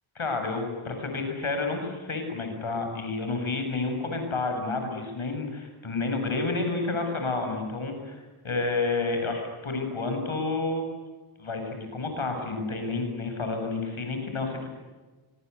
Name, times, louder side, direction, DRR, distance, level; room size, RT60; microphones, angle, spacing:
voice 1, 0.2-10.8 11.4-14.7, left 3 dB, 70° left, 5 dB, 7.2 m, -30 dB
25.5 x 25.0 x 8.2 m, 1.3 s
wide cardioid pair, 65°, 50 cm